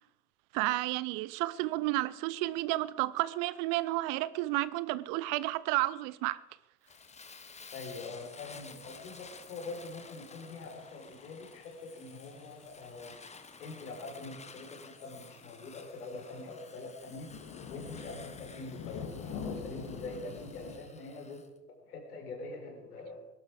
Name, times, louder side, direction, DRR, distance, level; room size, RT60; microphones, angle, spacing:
voice 1, 0.5-6.4, right 18 dB, 45° right, 0.7 m, -31 dB
sound 1, 6.9-20.8, left 6 dB, 40° left, 2.4 m, -48 dB
Fire, 6.9-21.5, left 4 dB, 15° left, 1.4 m, -53 dB
voice 2, 7.7-13.2 13.6-17.3 17.7-21.4 21.9-23.3, left 3 dB, 70° left, 5.0 m, -44 dB
22.5 x 12.0 x 4.9 m
figure-of-eight pair, 70°, 47 cm